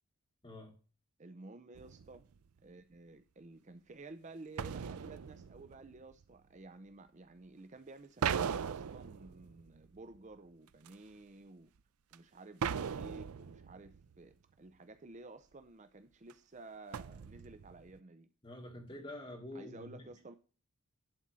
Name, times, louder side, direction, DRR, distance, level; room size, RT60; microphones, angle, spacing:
voice 1, 1.2-2.3 2.6-11.7 12.1-18.3 19.5-20.4, right 3 dB, 35° right, 0.6 m, -53 dB
sound 1, 1.7-2.3 4.6-6.3 8.2-10.2 10.9-11.0 12.1-12.2 12.6-14.2 16.3-16.4 16.9-18.0, right 7 dB, 85° right, 0.5 m, -39 dB
voice 2, 18.4-20.1, left 1 dB, 25° left, 2.4 m, -47 dB
11.0 x 4.2 x 6.1 m
head